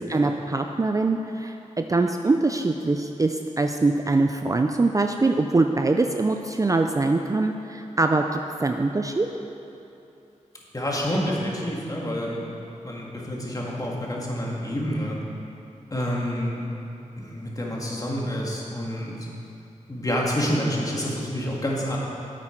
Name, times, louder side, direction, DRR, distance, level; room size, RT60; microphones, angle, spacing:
voice 1, 0.0-9.3, right 3 dB, 25° right, 5 dB, 0.4 m, -23 dB
voice 2, 10.7-12.5 12.8-15.2 15.9-16.6 17.2-19.2 19.9-22.0, equal, 30° left, -3 dB, 1.9 m, -28 dB
9.0 x 8.4 x 4.5 m, 2.8 s
wide cardioid pair, 70°, 13 cm